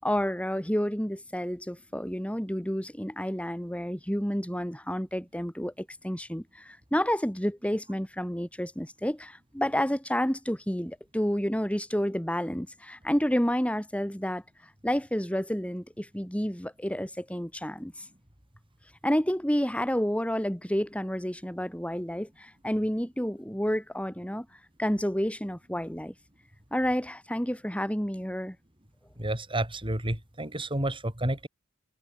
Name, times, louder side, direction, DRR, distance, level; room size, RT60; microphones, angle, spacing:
voice 1, 0.0-14.4 14.8-18.1 19.0-24.5 24.8-26.1 26.7-28.6, equal, 5° left, 5.6 m, -30 dB
voice 2, 29.2-31.5, right 1 dB, 25° right, 5.0 m, -30 dB
head